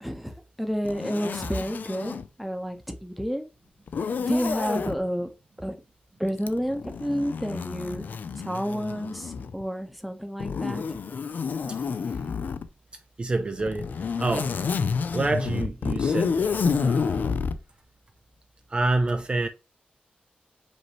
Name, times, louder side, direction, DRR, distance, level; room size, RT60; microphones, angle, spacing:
voice 1, 0.0-3.4 4.2-5.3 5.6-5.8 6.2-8.0 8.4-10.8, equal, ahead, 0.8 m, -30 dB
Zipper (clothing), 0.8-2.3 3.9-5.0 6.4-9.6 10.4-12.7 13.6-17.6, left 5 dB, 70° left, 0.4 m, -29 dB
voice 2, 13.2-14.5 15.1-17.4 18.7-19.5, right 2 dB, 35° right, 0.4 m, -28 dB
5.2 x 3.0 x 3.0 m
wide cardioid pair, 110°, 3 cm